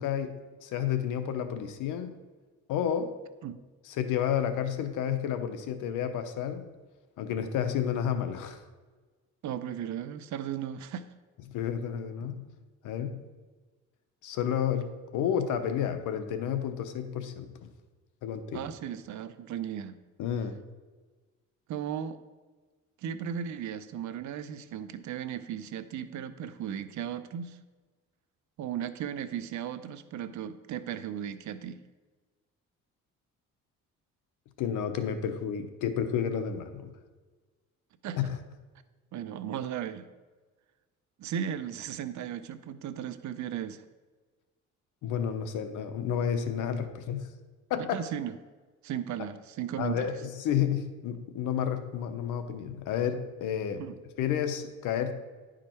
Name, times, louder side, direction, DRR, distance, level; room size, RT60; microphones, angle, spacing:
voice 1, 0.0-2.2 2.7-3.1 3.8-6.7 7.2-8.6 11.5-12.4 12.8-13.2 14.2-17.7 18.2-18.7 20.2-20.6 34.6-36.9 38.2-38.4 45.0-47.3 47.7-48.0 49.8-53.9 54.2-55.2, left 8 dB, 90° left, 9 dB, 0.8 m, -31 dB
voice 2, 9.4-11.1 18.5-20.0 21.7-22.2 23.0-27.6 28.6-31.8 38.0-38.2 39.1-40.1 41.2-43.8 47.9-48.3 48.8-50.1 53.8-53.9, right 9 dB, 70° right, 12 dB, 0.6 m, -36 dB
10.5 x 5.0 x 4.4 m, 1.3 s
cardioid pair, 90°, 30 cm